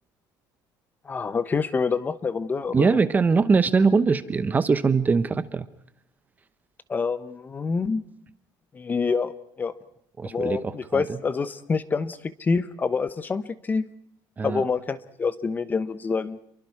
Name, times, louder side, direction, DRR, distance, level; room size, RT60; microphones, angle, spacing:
voice 1, 1.0-3.0 6.9-8.1 8.7-9.8 10.3-13.9 14.4-16.4, left 5 dB, 20° left, 14 dB, 1.0 m, -27 dB
voice 2, 2.7-5.7 10.2-11.2 14.4-14.6, right 4 dB, 20° right, 13 dB, 1.0 m, -22 dB
29.5 x 23.5 x 4.8 m, 0.68 s
cardioid pair, 150°, 9 cm